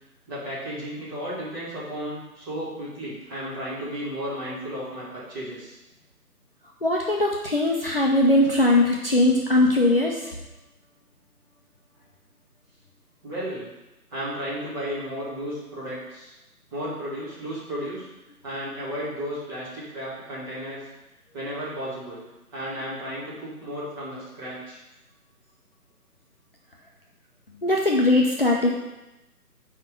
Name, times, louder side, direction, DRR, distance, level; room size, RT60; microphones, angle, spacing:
voice 1, 0.3-5.8 13.2-13.7 14.1-16.3 16.7-18.0 18.4-20.9 21.3-22.2 22.5-24.8, equal, 15° right, -11 dB, 2.3 m, -33 dB
voice 2, 6.8-10.2 27.6-28.7, left 1 dB, 40° left, -1 dB, 0.7 m, -20 dB
5.9 x 5.5 x 6.8 m, 0.99 s
hypercardioid pair, 170°, 46 cm